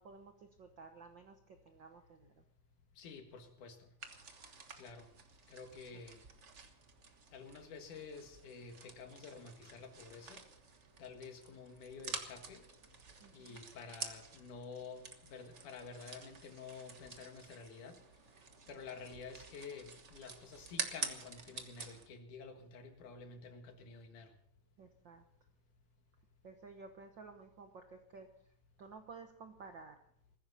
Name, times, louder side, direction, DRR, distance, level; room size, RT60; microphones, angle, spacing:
voice 1, 0.0-2.4 13.2-13.6 24.8-25.2 26.4-28.3 28.8-30.0, right 4 dB, 65° right, 6 dB, 1.1 m, -54 dB
voice 2, 3.0-3.9 4.8-5.1 5.5-6.2 7.3-10.4 11.0-12.6 13.3-18.0 18.7-24.3, left 5 dB, 75° left, 5 dB, 3.2 m, -50 dB
sound 1, 4.0-22.1, right 4 dB, 90° right, 0.6 m, -49 dB
21.0 x 15.0 x 4.2 m, 0.66 s
omnidirectional pair, 3.6 m